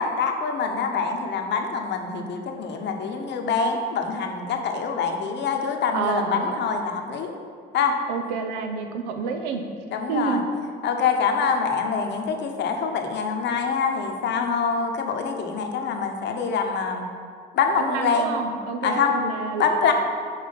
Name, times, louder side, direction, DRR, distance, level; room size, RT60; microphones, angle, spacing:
voice 1, 0.0-7.3 7.7-7.9 9.9-10.4 10.8-17.1 17.5-18.3 18.8-19.1 19.6-19.9, left 5 dB, 60° left, 4 dB, 0.9 m, -25 dB
voice 2, 5.9-6.5 8.1-9.6 10.1-10.4 17.8-19.6, right 5 dB, 90° right, 6 dB, 0.6 m, -28 dB
5.7 x 4.7 x 5.2 m, 2.1 s
supercardioid pair, 65°, 20 cm